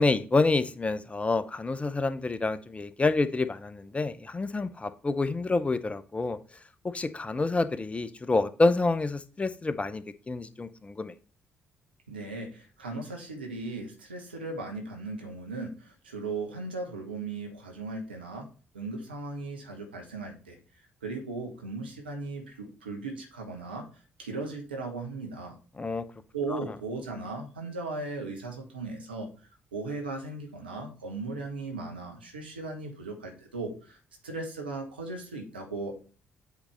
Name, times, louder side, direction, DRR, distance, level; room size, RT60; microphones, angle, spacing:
voice 1, 0.0-6.4 6.9-11.1 25.8-26.0 26.5-26.7, left 3 dB, 25° left, 13 dB, 0.7 m, -28 dB
voice 2, 12.1-18.5 18.7-20.6 21.0-23.8 24.2-25.6 26.3-29.3 29.7-34.0 34.2-35.9, right 3 dB, 85° right, 2 dB, 1.0 m, -37 dB
8.1 x 4.2 x 3.4 m, 0.36 s
figure-of-eight pair, 45°, 5 cm